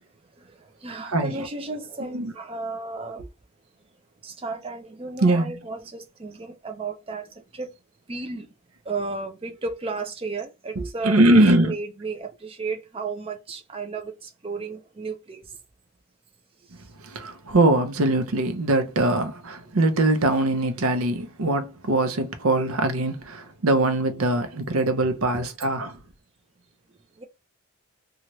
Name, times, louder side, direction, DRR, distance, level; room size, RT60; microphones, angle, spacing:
voice 1, 0.8-3.2 4.2-7.7 8.1-8.5 8.9-15.5 24.8-24.9 25.3-25.5 27.2-27.3, right 3 dB, 25° right, 0.5 m, -33 dB
voice 2, 5.2-5.6 10.8-11.7 17.1-26.0, right 2 dB, 80° right, 0.6 m, -22 dB
2.8 x 2.4 x 3.0 m
head